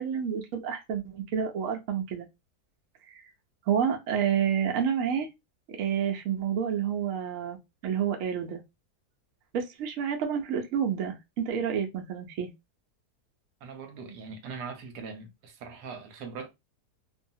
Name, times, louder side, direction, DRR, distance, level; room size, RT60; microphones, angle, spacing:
voice 1, 0.0-2.3 3.1-3.2 3.7-5.3 5.8-7.6 7.8-8.6 9.5-12.5, right 8 dB, 65° right, 0.9 m, -29 dB
voice 2, 13.6-16.5, right 5 dB, 80° right, 1.2 m, -41 dB
2.7 x 2.3 x 2.6 m
omnidirectional pair, 1.7 m